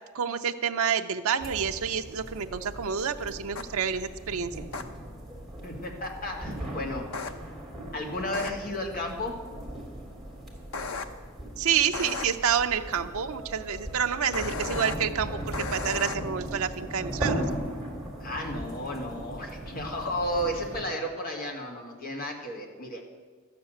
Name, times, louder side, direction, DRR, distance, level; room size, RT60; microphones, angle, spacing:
voice 1, 0.1-4.5 11.6-17.4, right 7 dB, 85° right, 6 dB, 0.6 m, -28 dB
sound 1, 1.4-20.8, right 1 dB, ahead, 2.7 m, -38 dB
sound 2, 3.5-3.6 4.7-4.8 7.1-7.3 8.3-8.5 10.7-11.0 11.9-12.2 14.3-14.9 15.5-16.1, left 4 dB, 85° left, 0.9 m, -34 dB
voice 2, 5.6-7.1 7.9-9.3 14.1-14.8 18.2-23.0, left 1 dB, 45° left, 1 dB, 2.0 m, -33 dB
12.5 x 6.9 x 9.0 m, 1.5 s
head